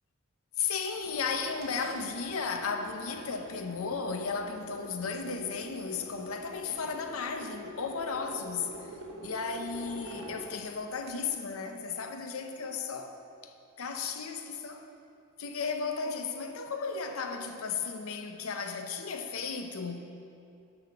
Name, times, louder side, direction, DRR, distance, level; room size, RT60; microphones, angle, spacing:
voice 1, 0.6-8.8 9.2-13.1 13.8-14.8 15.4-20.0, left 5 dB, 70° left, 0.7 m, -34 dB
sound 1, 1.0-11.3, right 1 dB, 65° right, 1.4 m, -47 dB
11.0 x 4.1 x 6.8 m
head